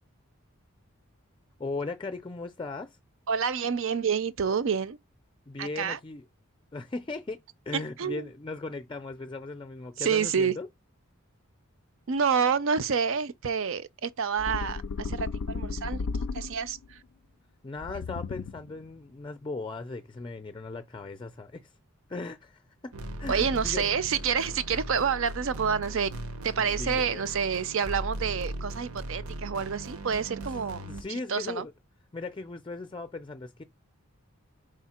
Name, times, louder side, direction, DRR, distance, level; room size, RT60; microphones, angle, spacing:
voice 1, 1.6-3.0 5.5-6.2 6.7-7.4 7.7-10.7 17.6-21.7 22.1-22.9 23.2-24.0 26.5-27.2 30.8-31.7 32.1-33.6, left 3 dB, 20° left, 0.5 m, -38 dB
voice 2, 3.3-5.0 5.6-6.0 7.7-8.3 10.0-10.5 12.1-16.0 16.3-17.0 23.3-26.1 26.4-30.8 31.1-31.7, right 6 dB, 60° right, 0.5 m, -28 dB
sound 1, 14.4-16.9 17.8-18.8, left 4 dB, 80° left, 0.4 m, -34 dB
sound 2, 22.9-31.0, right 1 dB, 90° right, 1.0 m, -38 dB
5.0 x 4.4 x 4.3 m
head